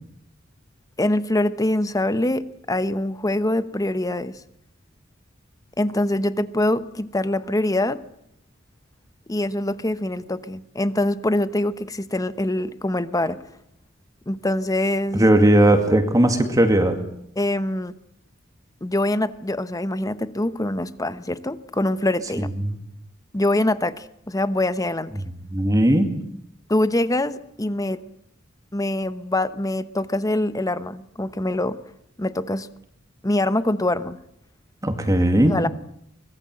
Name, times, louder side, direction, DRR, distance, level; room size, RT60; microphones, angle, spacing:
voice 1, 1.0-4.3 5.8-8.0 9.3-13.4 14.3-15.3 17.4-17.9 18.8-22.5 23.3-25.1 26.7-28.0 28.7-31.8 32.2-32.7 33.2-34.2 35.5-35.7, left 1 dB, 20° left, 13 dB, 1.0 m, -24 dB
voice 2, 15.1-17.0 22.7-22.8 25.5-26.2 34.8-35.6, right 1 dB, 20° right, 6 dB, 2.3 m, -17 dB
24.5 x 21.0 x 7.7 m, 0.74 s
head